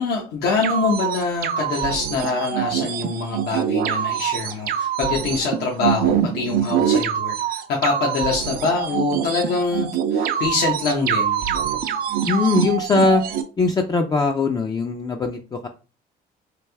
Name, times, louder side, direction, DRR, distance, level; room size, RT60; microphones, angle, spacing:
voice 1, 0.0-11.5, left 4 dB, 80° left, -1 dB, 0.8 m, -24 dB
sound 1, 0.6-13.4, right 9 dB, 60° right, 0.5 m, -24 dB
voice 2, 12.3-13.2 13.6-15.7, left 4 dB, 25° left, 3 dB, 0.4 m, -20 dB
3.3 x 2.6 x 3.3 m, 0.35 s
cardioid pair, 110°, 17 cm